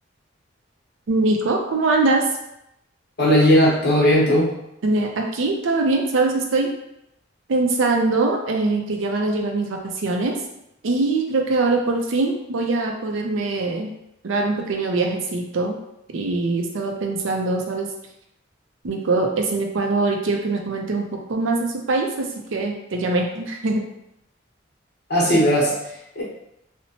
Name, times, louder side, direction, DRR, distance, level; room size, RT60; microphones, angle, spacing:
voice 1, 1.1-2.2 4.8-6.7 7.5-10.4 10.8-13.9 14.2-15.8 16.1-17.9 18.8-23.8, right 3 dB, 75° right, 2 dB, 0.5 m, -22 dB
voice 2, 3.2-4.5 25.1-25.7 26.2-26.3, equal, 55° left, -5 dB, 0.9 m, -17 dB
2.9 x 2.1 x 2.8 m, 0.81 s
head